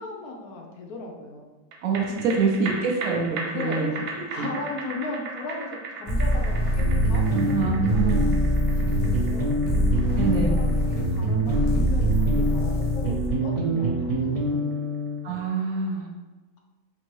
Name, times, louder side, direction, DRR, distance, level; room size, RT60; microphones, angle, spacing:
voice 1, 0.0-1.5 2.0-2.2 3.5-8.2 8.7-9.6 10.1-14.8, left 2 dB, 75° left, 1 dB, 1.1 m, -37 dB
sound 1, 1.7-14.4 14.7-14.8, right 3 dB, 85° right, 1.2 m, -38 dB
voice 2, 1.8-4.5 7.3-8.4 10.2-10.6 15.2-16.1, right 5 dB, 70° right, 0 dB, 0.9 m, -26 dB
sound 2, 6.1-13.3, equal, 30° left, 0.5 m, -25 dB
sound 3, 6.8-15.2, right 1 dB, 50° right, 0.4 m, -26 dB
4.4 x 2.8 x 3.0 m, 1.2 s
omnidirectional pair, 1.7 m